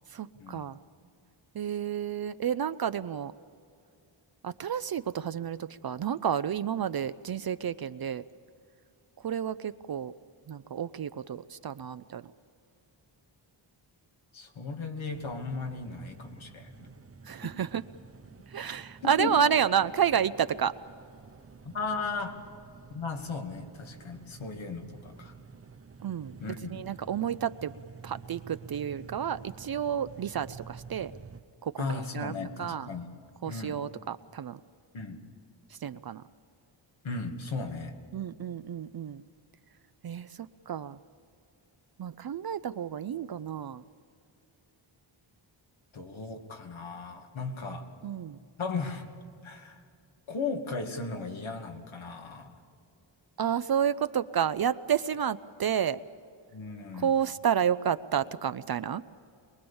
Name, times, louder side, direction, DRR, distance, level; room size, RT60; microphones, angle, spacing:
voice 1, 0.1-0.8 1.5-3.3 4.4-8.2 9.2-10.1 10.5-12.2 17.3-17.8 18.5-20.7 26.0-26.4 26.6-27.7 28.0-31.1 31.6-32.9 33.4-34.6 35.8-36.2 38.1-39.2 40.0-41.0 42.0-43.8 48.0-48.4 53.4-56.0 56.9-59.0, right 8 dB, 50° right, 13 dB, 0.5 m, -30 dB
voice 2, 14.3-16.9 17.4-17.5 19.0-19.3 21.6-22.4 22.9-25.3 26.4-26.8 31.8-33.1 33.5-33.8 34.9-35.2 37.0-38.0 45.9-47.9 48.6-49.1 49.4-49.8 50.3-52.6 56.5-57.1, left 4 dB, 80° left, 4 dB, 2.5 m, -36 dB
sound 1, 15.1-31.4, right 5 dB, 30° right, 0.9 m, -50 dB
23.5 x 22.0 x 7.1 m, 2.4 s
wide cardioid pair, 135°, 47 cm